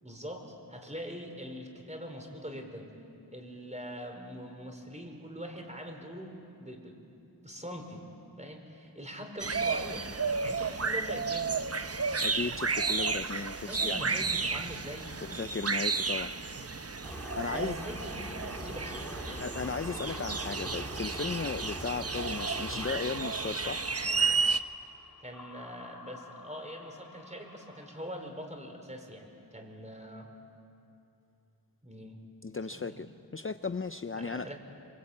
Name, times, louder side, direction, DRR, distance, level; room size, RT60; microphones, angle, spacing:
voice 1, 0.0-2.9 3.3-8.1 8.4-10.1 10.4-11.5 13.7-15.1 17.5-19.5 25.2-30.4 31.8-32.2 32.7-33.0 34.1-34.6, equal, 15° right, 4.7 m, -43 dB
sound 1, 9.4-24.6, right 4 dB, 35° right, 0.9 m, -32 dB
voice 2, 12.2-14.0 15.2-16.3 17.3-17.8 19.4-23.9 32.4-33.1 33.3-34.6, left 4 dB, 30° left, 0.7 m, -36 dB
sound 2, 17.0-23.0, equal, 5° left, 2.7 m, -43 dB
sound 3, 19.8-28.3, left 4 dB, 60° left, 2.8 m, -52 dB
26.0 x 24.5 x 8.7 m
wide cardioid pair, 55°, 40 cm